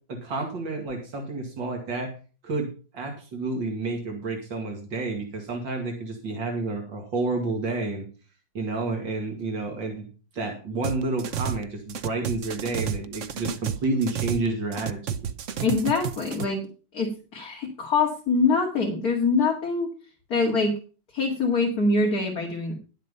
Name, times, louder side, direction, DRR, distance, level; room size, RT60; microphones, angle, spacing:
voice 1, 0.1-2.1 2.4-2.7 2.9-8.0 8.5-10.1 10.3-15.0, right 3 dB, 85° right, 2 dB, 3.0 m, -30 dB
sound 1, 10.8-11.6 11.9-14.5 14.7-16.4, right 8 dB, 55° right, 0.8 m, -31 dB
voice 2, 15.6-16.7 16.9-19.9 20.3-20.7 21.1-22.7, left 3 dB, 55° left, -1 dB, 2.5 m, -24 dB
11.5 x 7.5 x 5.5 m, 0.36 s
omnidirectional pair, 2.0 m